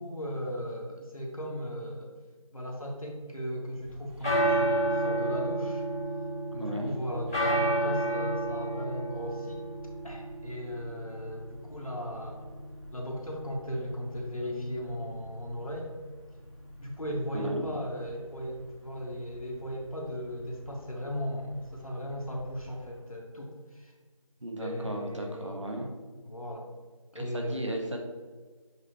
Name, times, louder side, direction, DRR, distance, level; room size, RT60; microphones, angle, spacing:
voice 1, 0.0-2.1 2.5-5.8 6.5-9.6 10.0-12.5 12.9-15.9 16.8-23.9 24.6-25.6 26.2-26.7 27.1-27.6, equal, 80° left, -1 dB, 1.9 m, -37 dB
sound 1, 3.9-22.9, right 1 dB, 5° left, 1.8 m, -33 dB
voice 2, 6.6-6.9 17.3-17.7 24.4-25.9 27.1-28.0, right 1 dB, 60° right, 2 dB, 1.3 m, -35 dB
7.7 x 5.4 x 3.1 m, 1.4 s
figure-of-eight pair, 175°, 18 cm